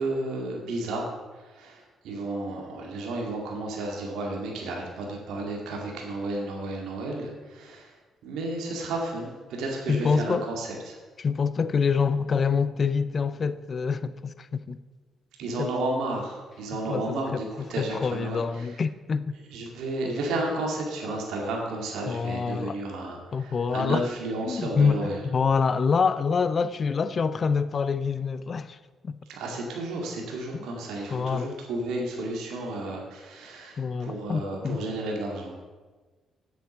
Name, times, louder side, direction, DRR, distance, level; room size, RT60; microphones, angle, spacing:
voice 1, 0.0-8.0 8.2-11.0 15.4-18.7 19.5-25.2 29.3-35.6, right 2 dB, 85° right, -1 dB, 2.3 m, -32 dB
voice 2, 9.9-10.5 11.2-14.8 15.6-15.7 16.9-17.4 17.8-19.3 22.1-22.8 23.3-24.1 24.5-28.8 29.0-29.2 30.5-30.7 31.1-31.5 33.8-34.8, left 5 dB, 40° left, 14 dB, 0.5 m, -26 dB
8.2 x 8.0 x 7.0 m, 1.3 s
cardioid pair, 90°, 0 cm